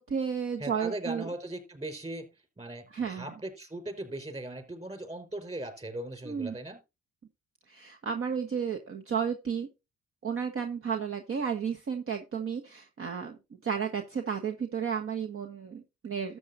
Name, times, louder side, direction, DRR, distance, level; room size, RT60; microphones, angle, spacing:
voice 1, 0.0-1.3 2.9-3.2 6.2-6.5 7.7-9.7 10.2-16.4, right 7 dB, 45° right, 4 dB, 1.4 m, -33 dB
voice 2, 0.6-2.3 2.6-6.8, right 1 dB, 20° right, 7 dB, 4.8 m, -39 dB
13.0 x 8.3 x 2.7 m, 0.26 s
cardioid pair, 90°, 30 cm